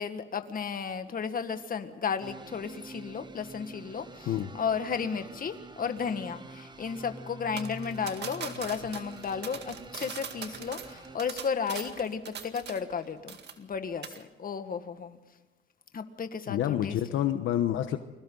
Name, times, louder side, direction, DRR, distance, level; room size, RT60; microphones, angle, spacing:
voice 1, 0.0-4.3 4.5-15.2 15.9-17.0, left 6 dB, 45° left, 8 dB, 1.9 m, -34 dB
sound 1, 2.2-11.2, right 3 dB, 20° right, 1.6 m, -47 dB
sound 2, 7.6-13.0 13.3-13.8 14.0-14.2, right 7 dB, 60° right, 2.1 m, -41 dB
voice 2, 16.5-18.0, left 11 dB, 80° left, 8 dB, 1.1 m, -28 dB
29.5 x 22.5 x 4.0 m, 1.1 s
cardioid pair, 90°, 20 cm